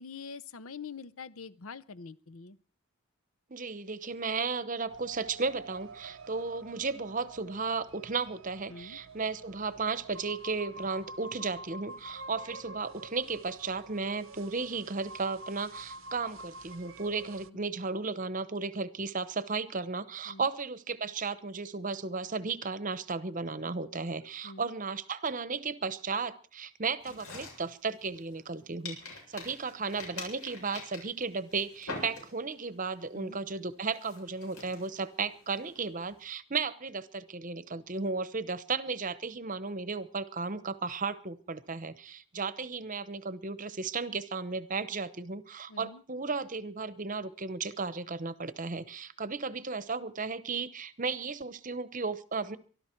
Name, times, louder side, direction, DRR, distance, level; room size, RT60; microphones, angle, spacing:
voice 1, 0.0-2.6 8.7-9.0 17.5-17.7 20.3-20.5 24.4-24.7 33.1-33.4 45.7-46.0, left 5 dB, 70° left, 17 dB, 0.7 m, -45 dB
voice 2, 3.5-52.6, right 4 dB, 35° right, 14 dB, 0.9 m, -34 dB
sound 1, 4.9-17.5, right 2 dB, 60° right, 0.7 m, -48 dB
sound 2, 27.0-28.5 28.8-32.6 33.0-33.3 33.8-36.1, left 3 dB, 85° left, 7.6 m, -45 dB
23.5 x 13.0 x 4.5 m, 0.43 s
head